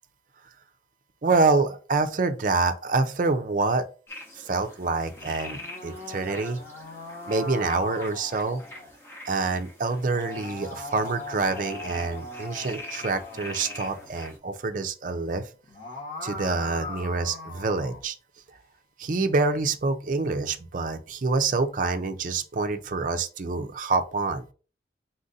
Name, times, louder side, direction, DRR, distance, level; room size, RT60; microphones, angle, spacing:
voice 1, 1.2-3.8 4.4-6.6 7.3-8.6 9.3-15.5 16.2-18.2 19.0-24.4, right 3 dB, 45° right, 0.5 m, -26 dB
sound 1, 4.1-14.4, left 1 dB, 15° left, 0.9 m, -44 dB
sound 2, 5.1-8.9 9.9-14.1 15.5-18.0, left 2 dB, 50° left, 1.6 m, -40 dB
4.2 x 2.5 x 4.0 m
head